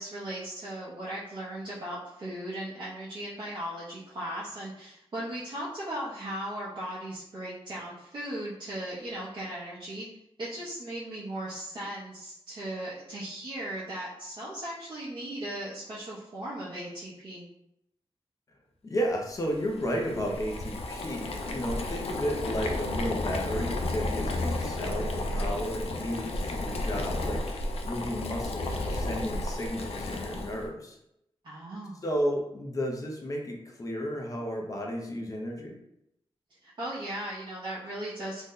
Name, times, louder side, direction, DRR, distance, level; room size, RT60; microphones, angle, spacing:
voice 1, 0.0-10.0 10.4-17.5 24.3-24.7 31.4-32.0 36.6-38.4, right 1 dB, 50° right, -9 dB, 0.7 m, -37 dB
voice 2, 18.8-27.4 27.8-31.0 32.0-35.7, equal, 35° left, 1 dB, 0.5 m, -33 dB
Boiling, 19.4-30.7, left 2 dB, 80° left, 0.4 m, -32 dB
2.6 x 2.1 x 3.6 m, 0.80 s
wide cardioid pair, 150°, 10 cm